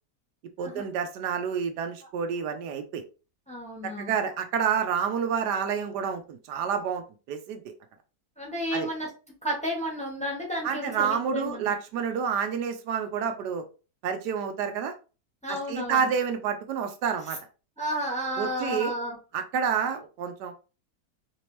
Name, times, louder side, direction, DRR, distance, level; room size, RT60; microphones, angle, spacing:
voice 1, 0.6-3.0 3.8-7.6 8.7-8.9 10.6-13.6 14.0-14.9 15.5-17.4 18.4-18.9 19.3-20.5, right 7 dB, 75° right, 7 dB, 1.1 m, -29 dB
voice 2, 3.5-4.1 8.4-9.1 9.4-11.7 15.4-16.1 17.8-19.2, equal, 5° left, -2 dB, 0.8 m, -32 dB
3.4 x 3.0 x 3.0 m, 0.34 s
omnidirectional pair, 1.8 m